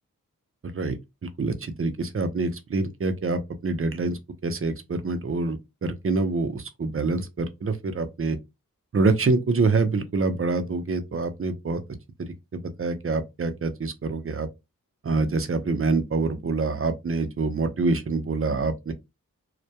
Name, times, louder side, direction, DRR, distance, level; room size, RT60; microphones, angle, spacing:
voice 1, 0.6-1.0 1.4-8.4 8.9-11.8 12.2-14.5 15.0-18.9, right 3 dB, 40° right, 0.5 m, -26 dB
2.2 x 2.2 x 2.7 m
cardioid pair, 45°, 34 cm